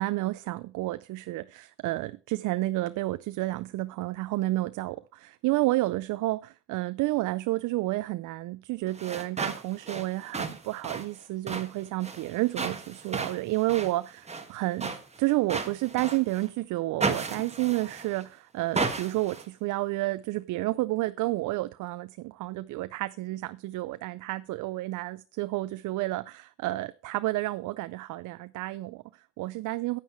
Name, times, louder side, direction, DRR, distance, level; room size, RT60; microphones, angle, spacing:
voice 1, 0.0-30.0, right 18 dB, 85° right, 0.5 m, -30 dB
sound 1, 8.9-16.5 17.0-18.3 18.7-19.5, right 4 dB, 20° right, 1.4 m, -35 dB
9.3 x 9.1 x 4.3 m
cardioid pair, 90°, 30 cm